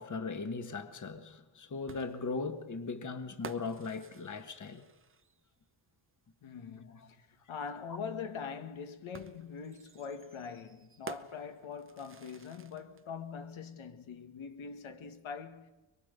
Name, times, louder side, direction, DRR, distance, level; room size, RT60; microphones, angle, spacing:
voice 1, 0.0-4.8, left 4 dB, 40° left, 1.5 m, -38 dB
sound 1, 1.9-5.5 7.0-7.1 9.1-13.0, right 5 dB, 25° right, 0.7 m, -51 dB
voice 2, 6.4-15.7, left 6 dB, 80° left, 1.8 m, -43 dB
24.0 x 22.5 x 6.8 m
cardioid pair, 115°, 47 cm